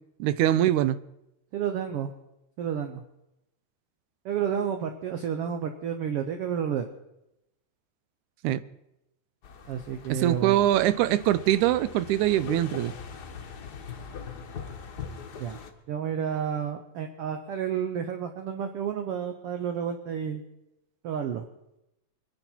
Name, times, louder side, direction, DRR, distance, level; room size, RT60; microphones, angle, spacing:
voice 1, 0.2-1.0 8.4-8.6 10.1-12.9, right 13 dB, 85° right, 16 dB, 2.1 m, -23 dB
voice 2, 1.5-2.1 2.6-3.0 4.2-6.9 9.7-10.7 15.4-15.6 15.9-20.4 21.0-21.5, right 8 dB, 65° right, 7 dB, 1.6 m, -31 dB
sound 1, 9.4-15.7, left 6 dB, 55° left, 1.2 m, -41 dB
24.0 x 10.5 x 4.5 m, 0.87 s
omnidirectional pair, 3.4 m